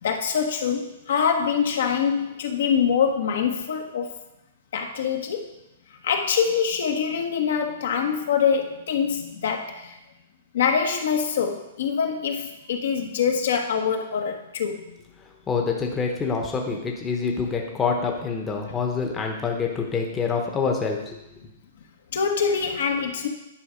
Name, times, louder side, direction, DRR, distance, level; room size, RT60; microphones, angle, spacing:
voice 1, 0.0-4.1 4.7-5.5 6.0-10.0 10.5-14.9 22.1-23.3, left 7 dB, 70° left, 3 dB, 1.3 m, -24 dB
voice 2, 15.5-21.2, left 5 dB, 15° left, 1 dB, 0.9 m, -26 dB
10.0 x 5.1 x 5.1 m, 0.91 s
hypercardioid pair, 160°, 0 cm